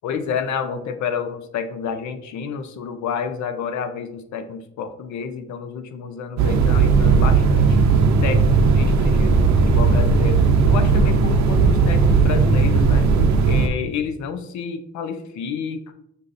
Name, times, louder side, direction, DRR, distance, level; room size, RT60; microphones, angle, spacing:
voice 1, 0.0-7.8 8.2-13.1 13.4-15.9, left 6 dB, 70° left, 9 dB, 0.6 m, -29 dB
sound 1, 6.4-13.7, right 4 dB, 65° right, 0.7 m, -16 dB
6.2 x 2.7 x 2.5 m, 0.77 s
cardioid pair, 90°, 30 cm